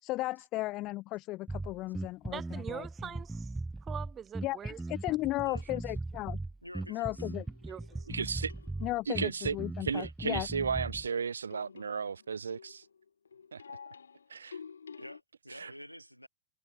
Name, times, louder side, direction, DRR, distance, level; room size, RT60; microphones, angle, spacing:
voice 1, 0.0-2.9 4.4-6.4 6.9-7.4 8.8-10.5, left 18 dB, 40° left, 0.9 m, -35 dB
Bass guitar, 1.5-11.1, right 2 dB, 5° right, 0.8 m, -39 dB
voice 2, 2.3-3.5 3.8-4.8 5.1-5.2 7.7-8.0, right 8 dB, 25° right, 3.2 m, -43 dB
voice 3, 5.4-5.9 6.6-7.3 7.7-7.8 9.9-10.1 15.0-16.3, equal, 90° left, 6.0 m, -48 dB
sound 1, 6.7-9.2 10.7-15.2, left 6 dB, 70° left, 1.3 m, -51 dB
voice 4, 8.1-8.5 9.1-9.6 9.8-12.8 13.5-13.6 14.3-14.6 15.6-15.7, right 6 dB, 75° right, 1.3 m, -34 dB
figure-of-eight pair, 90°, 0 cm